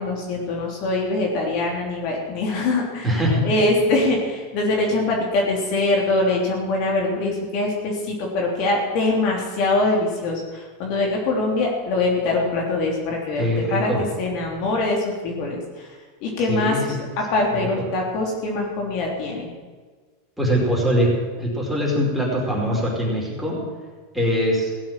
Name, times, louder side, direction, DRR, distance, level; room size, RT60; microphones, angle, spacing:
voice 1, 0.0-13.9 14.2-15.9 16.2-19.5, left 2 dB, 55° left, -1 dB, 3.3 m, -23 dB
voice 2, 3.0-3.4 13.4-14.0 16.5-17.0 20.4-21.1 21.4-23.6 24.1-24.7, equal, ahead, -5 dB, 5.1 m, -22 dB
17.0 x 7.6 x 7.6 m, 1.4 s
supercardioid pair, 125°, 0 cm